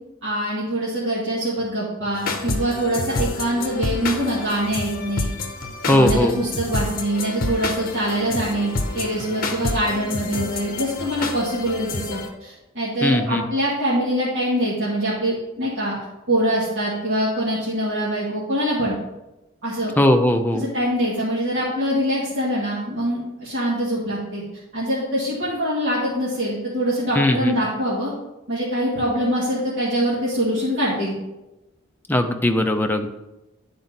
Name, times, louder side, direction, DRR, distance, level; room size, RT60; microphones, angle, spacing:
voice 1, 0.2-5.3 5.8-16.0 16.3-18.9 19.6-19.9 20.5-24.4 24.7-28.1 28.5-31.1, equal, 60° right, -10 dB, 2.0 m, -24 dB
sound 1, 2.1-12.3, left 2 dB, 45° left, 0.8 m, -28 dB
voice 2, 5.9-6.3 13.0-13.4 20.0-20.6 27.2-27.5 32.1-33.1, left 1 dB, 10° left, 5 dB, 0.5 m, -19 dB
10.5 x 4.3 x 4.0 m, 1.0 s
head